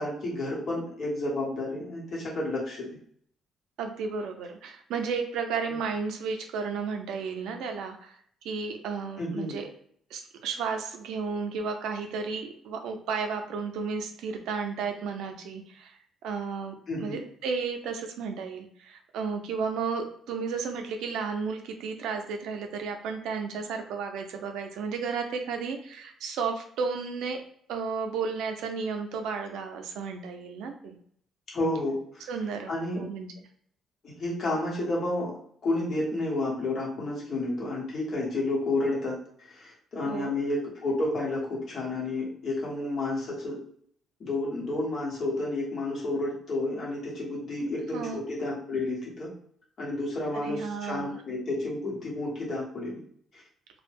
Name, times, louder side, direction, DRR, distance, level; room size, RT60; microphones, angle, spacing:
voice 1, 0.0-3.0 9.2-9.6 16.9-17.2 31.5-32.3 32.7-33.0 34.0-35.3 35.6-39.2 39.5-43.6 44.2-49.3 49.8-53.0 53.3-53.4, left 2 dB, 35° left, -5 dB, 1.1 m, -31 dB
voice 2, 3.8-8.2 8.4-9.7 10.1-16.0 16.2-16.7 17.0-27.4 27.7-31.0 32.3-33.3 40.0-40.3 47.9-48.2 50.4-51.2, right 5 dB, 85° right, 5 dB, 0.4 m, -33 dB
2.2 x 2.0 x 3.3 m, 0.62 s
cardioid pair, 180°, 0 cm